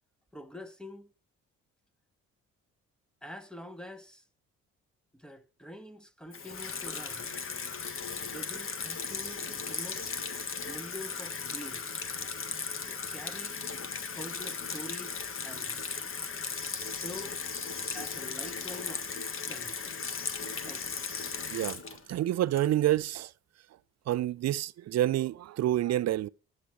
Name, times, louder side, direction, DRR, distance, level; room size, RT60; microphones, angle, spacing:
voice 1, 0.3-1.1 3.2-4.2 5.1-7.4 8.3-10.0 10.7-12.0 12.8-13.6 14.1-15.8 16.9-17.4 17.9-19.1 19.5-20.0 20.6-21.0, left 1 dB, 5° left, 1.5 m, -46 dB
Water tap faucet / Sink (filling or washing), 6.3-23.0, left 5 dB, 45° left, 1.5 m, -37 dB
voice 2, 21.5-21.8 22.1-23.3 24.1-26.3, right 13 dB, 60° right, 0.5 m, -28 dB
11.5 x 7.8 x 6.1 m
cardioid pair, 90°, 30 cm